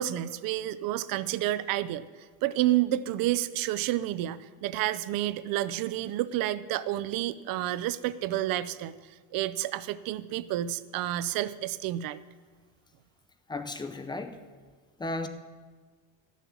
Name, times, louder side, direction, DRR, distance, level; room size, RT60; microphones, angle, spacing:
voice 1, 0.0-2.0 2.4-8.9 9.3-12.2, right 14 dB, 50° right, 16 dB, 0.6 m, -30 dB
voice 2, 13.5-14.4 15.0-15.3, left 2 dB, 10° left, 8 dB, 0.5 m, -34 dB
12.5 x 7.2 x 7.2 m, 1.5 s
cardioid pair, 135°, 46 cm